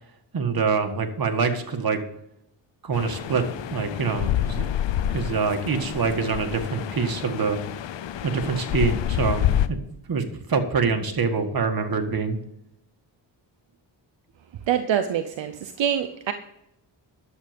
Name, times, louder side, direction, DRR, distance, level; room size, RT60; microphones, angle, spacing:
voice 1, 0.3-2.0 2.8-3.4 3.7-4.7 5.1-7.6 8.2-9.8 10.1-12.4, right 5 dB, 50° right, 5 dB, 1.8 m, -25 dB
sound 1, 2.9-9.7, left 11 dB, 70° left, 0.8 m, -28 dB
voice 2, 14.7-16.3, right 9 dB, 75° right, 9 dB, 0.9 m, -25 dB
11.0 x 7.7 x 5.2 m, 0.78 s
cardioid pair, 75°, 45 cm